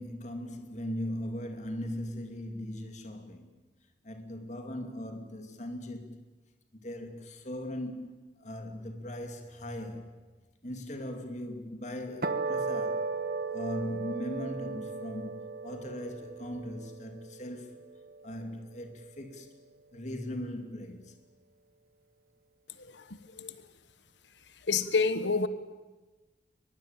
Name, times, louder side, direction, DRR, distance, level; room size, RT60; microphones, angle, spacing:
voice 1, 0.0-3.5 4.0-6.2 6.8-10.2 10.6-13.1 13.5-17.8 18.2-19.5 19.9-21.2, left 1 dB, 40° left, 2.6 m, -39 dB
sound 1, 12.2-18.7, right 4 dB, 55° right, 1.6 m, -36 dB
voice 2, 24.7-25.5, left 4 dB, 80° left, 1.2 m, -27 dB
22.5 x 21.5 x 8.9 m
head